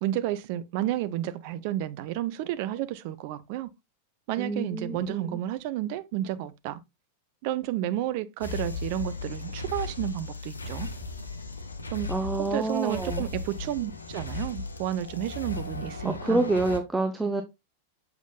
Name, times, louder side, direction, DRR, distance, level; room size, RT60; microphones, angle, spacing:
voice 1, 0.0-3.7 4.3-6.8 7.4-10.9 11.9-12.1 12.4-16.4, right 13 dB, 45° right, 0.6 m, -31 dB
voice 2, 4.4-5.4 12.1-13.3 16.0-17.4, right 2 dB, 10° right, 0.7 m, -28 dB
sound 1, 8.4-16.8, left 3 dB, 75° left, 0.9 m, -36 dB
7.1 x 5.9 x 2.3 m
figure-of-eight pair, 90°, 0 cm